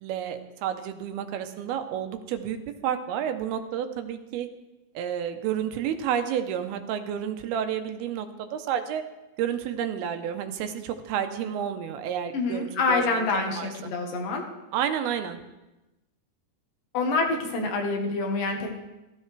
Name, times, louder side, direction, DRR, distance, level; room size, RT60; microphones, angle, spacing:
voice 1, 0.0-2.6 2.8-4.5 5.0-9.0 9.4-13.7 14.7-15.4, right 9 dB, 85° right, 8 dB, 2.8 m, -30 dB
voice 2, 12.3-14.4 16.9-18.8, left 3 dB, 70° left, 2 dB, 3.0 m, -26 dB
15.0 x 13.5 x 3.3 m, 1.0 s
omnidirectional pair, 4.3 m